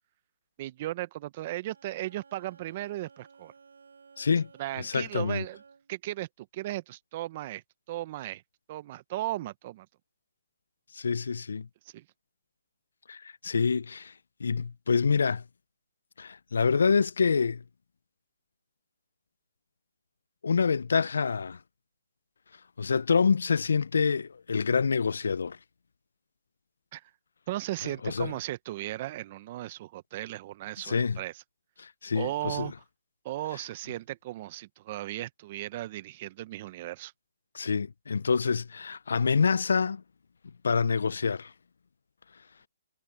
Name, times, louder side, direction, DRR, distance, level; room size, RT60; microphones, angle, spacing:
voice 1, 0.6-3.5 4.6-5.6 5.9-7.6 7.9-8.4 8.7-9.9 11.8-12.0 26.9-27.0 27.5-31.3 32.1-32.7 33.2-37.1, right 15 dB, 30° right, 0.8 m, -36 dB
Bowed string instrument, 1.6-6.1, right 5 dB, 75° right, 6.5 m, -56 dB
voice 2, 4.2-4.5 4.8-5.4 10.9-11.7 13.1-14.1 14.4-15.4 16.2-17.6 20.4-21.6 22.8-25.6 28.0-28.3 30.8-31.2 31.8-32.7 37.5-40.0 40.6-41.5, left 5 dB, 75° left, 0.4 m, -26 dB
hypercardioid pair, 160°, 0 cm